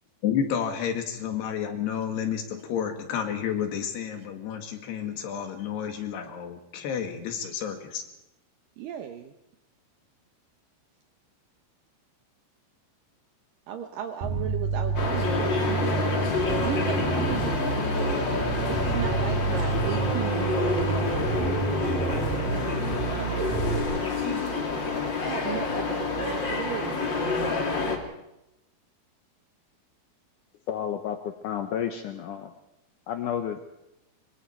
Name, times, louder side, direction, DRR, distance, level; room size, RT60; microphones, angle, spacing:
voice 1, 0.2-8.0, left 8 dB, 70° left, 5 dB, 4.0 m, -30 dB
voice 2, 8.8-9.3 13.7-16.2 16.6-17.9 18.7-24.7 25.2-27.0, right 10 dB, 75° right, 7 dB, 2.1 m, -37 dB
Bass guitar, 14.2-23.8, right 4 dB, 50° right, 4.6 m, -29 dB
sound 1, 14.9-28.0, left 3 dB, 35° left, 2.3 m, -28 dB
voice 3, 30.7-32.5 33.1-33.6, left 9 dB, 90° left, 7 dB, 1.8 m, -31 dB
24.5 x 24.0 x 4.6 m, 0.89 s
omnidirectional pair, 5.1 m